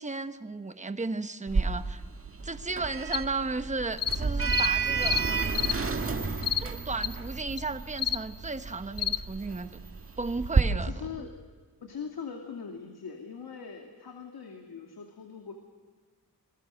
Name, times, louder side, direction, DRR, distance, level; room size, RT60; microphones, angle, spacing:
voice 1, 0.0-2.0 2.4-5.2 6.6-9.8 10.2-10.9, right 3 dB, 20° right, 1.1 m, -34 dB
Sliding door, 1.5-10.6, right 4 dB, 35° right, 1.8 m, -31 dB
sound 1, 3.1-3.2 4.0-4.2 4.5-4.7 5.0-5.2 5.6-5.8 6.4-6.6 7.0-7.1 7.6-7.7 8.0-8.2 9.0-9.2, left 10 dB, 65° left, 0.8 m, -29 dB
voice 2, 10.7-11.4 11.8-15.5, left 6 dB, 85° left, 2.5 m, -41 dB
27.5 x 21.5 x 6.5 m
wide cardioid pair, 115°, 37 cm